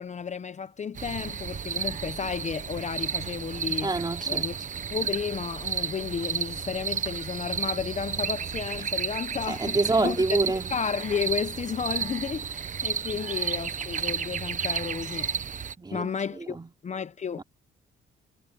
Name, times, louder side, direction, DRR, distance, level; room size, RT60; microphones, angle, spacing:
voice 1, 0.0-3.9 4.3-4.5 4.9-10.4 10.7-15.3 15.9-16.6 16.8-17.4, left 6 dB, 35° left, 0.8 m, -32 dB
sound 1, 1.0-15.7, right 7 dB, 40° right, 1.1 m, -32 dB
voice 2, 3.8-4.5 9.5-10.7 13.2-13.3 15.8-16.1 16.4-16.7 17.4-17.5, right 3 dB, 20° right, 3.6 m, -27 dB
cardioid pair, 90°, 20 cm